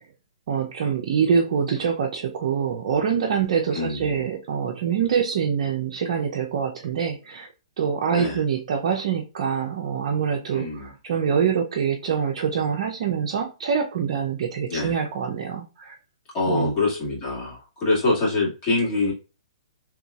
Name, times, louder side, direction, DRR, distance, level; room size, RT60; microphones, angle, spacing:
voice 1, 0.5-7.5 7.8-15.9 16.5-16.7, right 7 dB, 55° right, 0.5 m, -25 dB
voice 2, 3.7-4.2 8.1-8.4 10.5-10.9 14.7-14.9 16.3-19.1, left 2 dB, 30° left, 1.9 m, -25 dB
3.8 x 2.9 x 2.3 m
hypercardioid pair, 130°, 3 cm